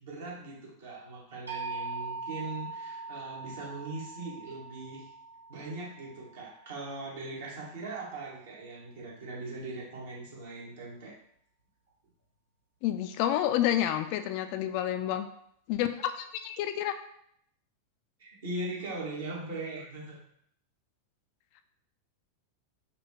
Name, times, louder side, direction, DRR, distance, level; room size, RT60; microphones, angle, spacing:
voice 1, 0.0-5.1 5.5-11.1 18.2-20.2, right 2 dB, 60° right, -4 dB, 1.5 m, -40 dB
sound 1, 1.5-7.4, right 3 dB, 80° right, 1.0 m, -42 dB
voice 2, 12.8-15.3 15.7-16.9, left 11 dB, 45° left, 8 dB, 0.3 m, -29 dB
5.0 x 2.9 x 3.3 m, 0.70 s
figure-of-eight pair, 90°, 0 cm